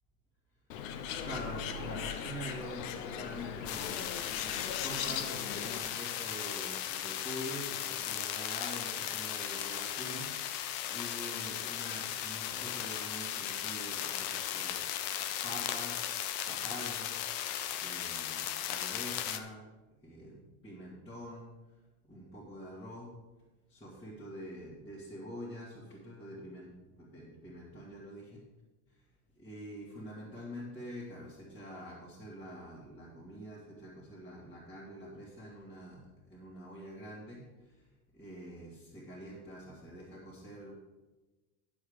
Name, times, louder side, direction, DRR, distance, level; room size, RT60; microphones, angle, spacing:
Bird, 0.7-5.8, left 8 dB, 60° left, 0.9 m, -39 dB
voice 1, 1.2-4.1 4.4-14.8 15.4-17.5 17.8-19.7 20.0-21.5 22.1-23.1 23.7-28.4 29.4-37.8 38.1-40.7, equal, 10° left, -8 dB, 1.8 m, -46 dB
sound 1, 3.6-19.4, left 11 dB, 30° left, 0.4 m, -37 dB
9.8 x 7.1 x 5.0 m, 1.1 s
supercardioid pair, 165°, 44 cm